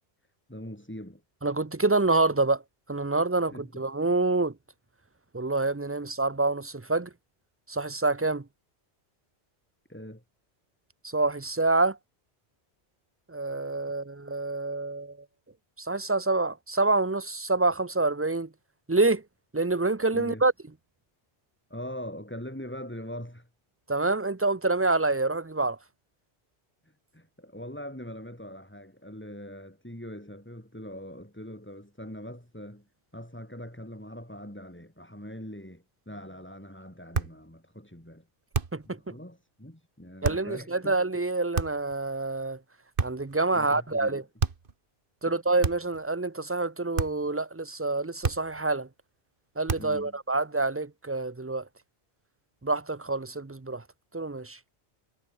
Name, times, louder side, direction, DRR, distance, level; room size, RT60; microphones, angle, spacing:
voice 1, 0.5-1.2 3.5-3.8 9.9-10.2 20.1-20.4 21.7-23.5 26.8-32.9 33.1-38.3 38.9-41.0 43.5-44.2 45.3-45.4 49.8-50.2, equal, 10° left, 3.7 m, -42 dB
voice 2, 1.4-2.6 2.9-4.5 5.3-7.1 7.7-8.4 11.0-12.0 13.3-15.2 15.8-18.5 18.9-19.2 19.5-20.5 23.9-25.8 38.7-39.1 40.2-42.6 43.0-44.2 45.2-48.9 49.6-51.6 52.6-53.8 54.1-54.6, right 3 dB, 15° right, 0.5 m, -27 dB
sound 1, 37.1-37.4 38.5-38.9 40.2-40.5 41.5-41.9 43.0-43.4 44.4-44.7 45.6-46.0 47.0-47.3 48.2-48.6 49.7-50.0, right 5 dB, 55° right, 1.6 m, -30 dB
omnidirectional pair, 1.1 m